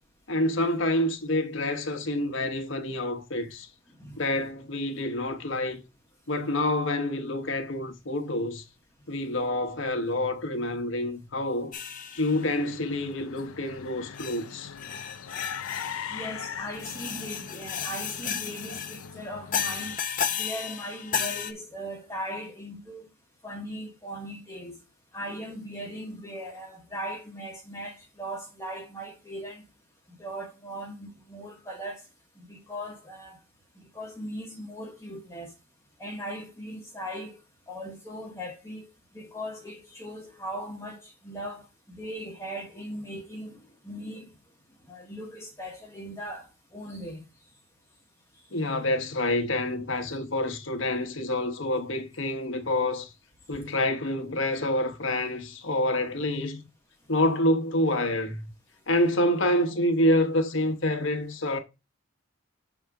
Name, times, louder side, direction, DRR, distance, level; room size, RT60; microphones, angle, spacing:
voice 1, 0.3-3.7 4.2-5.8 6.3-8.6 9.1-11.8 12.1-14.8 48.5-53.1 53.5-56.6 57.1-58.5 58.9-61.6, left 1 dB, 65° left, 1.1 m, -27 dB
sound 1, 11.7-12.6 13.4-13.5 14.1-14.4 14.8-16.1 16.7-19.1 19.5-21.5, left 8 dB, 40° left, 0.7 m, -33 dB
sound 2, 12.3-20.0, left 7 dB, 85° left, 0.5 m, -41 dB
voice 2, 16.1-20.0 20.4-23.1 23.4-24.7 25.1-29.6 30.2-32.0 32.5-33.4 33.8-35.5 36.0-37.4 37.7-38.9 39.1-41.6 41.9-43.6 43.8-44.3 44.9-47.2, equal, 15° left, 1.2 m, -38 dB
7.1 x 3.9 x 4.6 m
head